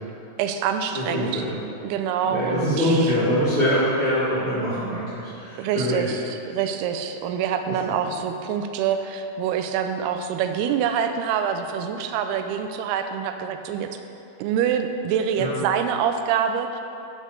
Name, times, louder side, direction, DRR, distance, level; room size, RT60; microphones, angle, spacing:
voice 1, 0.4-1.4 1.8-3.1 5.6-14.0 14.4-16.8, right 8 dB, 80° right, 7 dB, 2.4 m, -26 dB
voice 2, 0.9-1.5 2.3-6.1 7.7-7.8 15.4-15.5, equal, 35° right, -13 dB, 2.4 m, -24 dB
9.4 x 5.4 x 6.4 m, 2.7 s
omnidirectional pair, 4.9 m